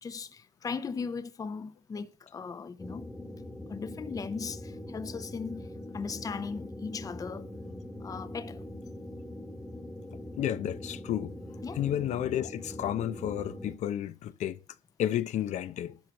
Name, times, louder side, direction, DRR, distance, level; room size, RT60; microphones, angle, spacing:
voice 1, 0.0-3.3 3.7-5.7 5.9-8.6 11.6-11.8, left 5 dB, 30° left, 0.7 m, -38 dB
sound 1, 2.8-13.7, left 1 dB, 10° left, 1.3 m, -42 dB
voice 2, 10.4-11.3 11.8-14.6 15.0-16.0, left 11 dB, 75° left, 0.6 m, -31 dB
11.5 x 4.5 x 7.6 m
cardioid pair, 110°, 12 cm